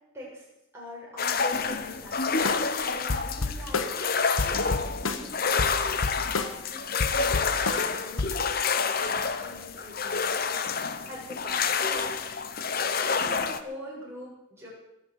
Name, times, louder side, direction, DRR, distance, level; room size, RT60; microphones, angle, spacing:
voice 1, 0.1-0.5 0.7-6.0 6.3-7.4 7.6-12.4 13.2-14.7, left 1 dB, 15° right, -6 dB, 7.2 m, -43 dB
sound 1, 1.2-13.6, left 5 dB, 45° left, 0.8 m, -28 dB
sound 2, 2.5-2.8 3.1-4.1 4.4-6.7 7.0-8.4, left 3 dB, 90° left, 1.2 m, -30 dB
20.5 x 6.9 x 8.3 m, 0.90 s
head